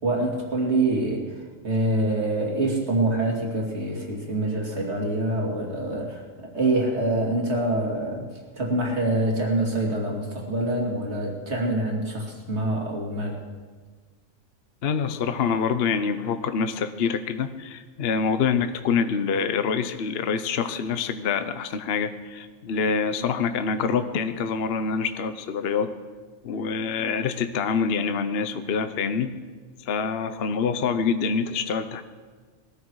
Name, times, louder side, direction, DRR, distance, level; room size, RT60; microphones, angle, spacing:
voice 1, 0.0-1.3 1.6-8.3 8.5-13.4, right 2 dB, 55° right, -1 dB, 3.1 m, -25 dB
voice 2, 14.8-25.9 26.4-29.4 29.8-32.0, left 6 dB, 55° left, 9 dB, 0.9 m, -26 dB
21.0 x 13.5 x 4.8 m, 1.5 s
omnidirectional pair, 1.4 m